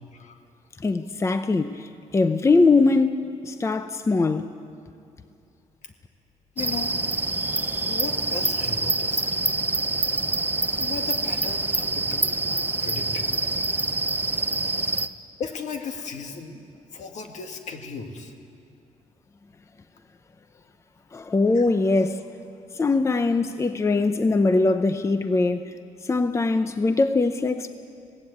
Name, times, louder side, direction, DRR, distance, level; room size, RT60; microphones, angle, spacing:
voice 1, 0.8-4.6 21.1-22.2 22.7-25.7 26.0-27.7, left 3 dB, 20° left, 0.7 m, -22 dB
voice 2, 6.6-7.0 7.8-9.2 10.8-13.4 15.4-16.6 16.9-18.4 21.5-21.6, left 5 dB, 70° left, 2.0 m, -36 dB
sound 1, 6.6-15.1, right 2 dB, 15° right, 0.7 m, -26 dB
20.5 x 16.5 x 8.6 m
cardioid pair, 105°, 13 cm